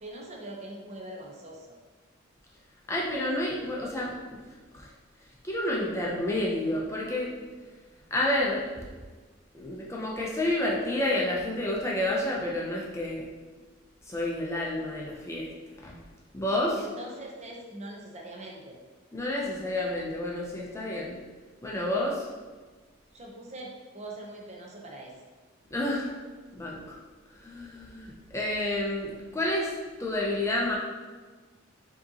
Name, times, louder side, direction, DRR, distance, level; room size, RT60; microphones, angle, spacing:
voice 1, 0.0-1.8 16.7-18.8 23.1-25.1, right 1 dB, 35° right, -1 dB, 0.6 m, -42 dB
voice 2, 2.9-4.4 4.7-4.9 5.4-7.3 8.1-8.9 9.5-13.2 14.1-15.5 15.8-15.9 16.3-16.8 19.1-21.2 21.6-22.3 25.7-26.1 26.6-27.0 27.3-29.7 30.0-30.8, left 1 dB, 15° left, -3 dB, 0.4 m, -29 dB
4.8 x 2.8 x 2.7 m, 1.4 s
head